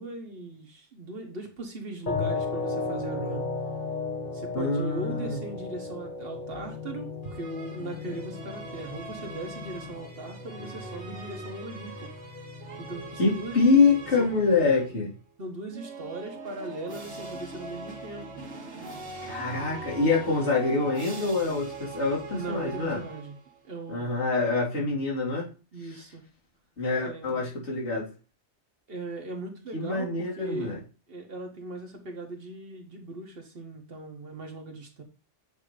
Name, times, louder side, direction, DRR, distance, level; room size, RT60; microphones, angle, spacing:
voice 1, 0.0-3.4 4.3-12.1 12.8-13.6 14.2-14.3 15.4-18.3 22.3-23.4 23.7-24.2 25.7-26.2 27.0-27.5 28.9-30.8 31.1-35.0, right 2 dB, 55° right, 1.4 m, -39 dB
sound 1, 2.1-15.0, left 4 dB, 40° left, 1.3 m, -36 dB
voice 2, 4.5-5.4 13.2-15.1 19.2-23.0 23.9-25.5 26.8-28.1 29.7-30.8, left 4 dB, 70° left, 2.9 m, -25 dB
sound 2, 7.2-15.1 15.7-23.6, right 3 dB, 75° right, 2.0 m, -42 dB
8.4 x 2.9 x 5.0 m
omnidirectional pair, 1.2 m